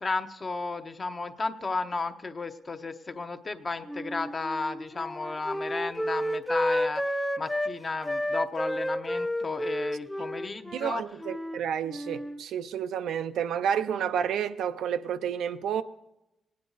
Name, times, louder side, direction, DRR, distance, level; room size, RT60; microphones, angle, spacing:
voice 1, 0.0-11.0, left 3 dB, 30° left, 0.8 m, -34 dB
Wind instrument woodwind instrument, 3.9-7.7 8.0-11.6 11.9-12.4, equal, 5° left, 0.4 m, -31 dB
voice 2, 10.7-15.8, right 8 dB, 90° right, 0.5 m, -30 dB
19.0 x 9.6 x 4.0 m
cardioid pair, 120°, 0 cm